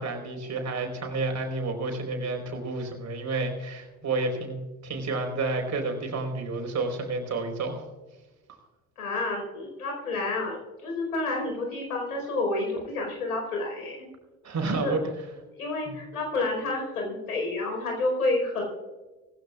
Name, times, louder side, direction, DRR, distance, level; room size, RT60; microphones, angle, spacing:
voice 1, 0.0-4.6 4.8-7.8 14.4-15.0 15.9-16.0, right 3 dB, 40° right, 4 dB, 4.4 m, -30 dB
voice 2, 9.0-14.1 14.6-15.0 15.6-18.6, left 2 dB, 80° left, 1 dB, 4.7 m, -29 dB
20.0 x 15.5 x 2.4 m, 1.2 s
figure-of-eight pair, 55°, 43 cm